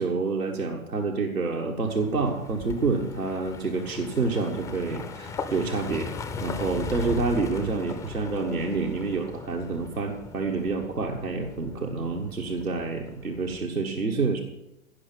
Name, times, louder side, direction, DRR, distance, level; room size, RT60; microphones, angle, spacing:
voice 1, 0.0-6.1 6.4-14.4, right 3 dB, 85° right, -1 dB, 1.6 m, -28 dB
sound 1, 1.8-13.7, left 4 dB, 10° left, 0.5 m, -39 dB
16.5 x 5.8 x 8.2 m, 0.91 s
figure-of-eight pair, 110°, 42 cm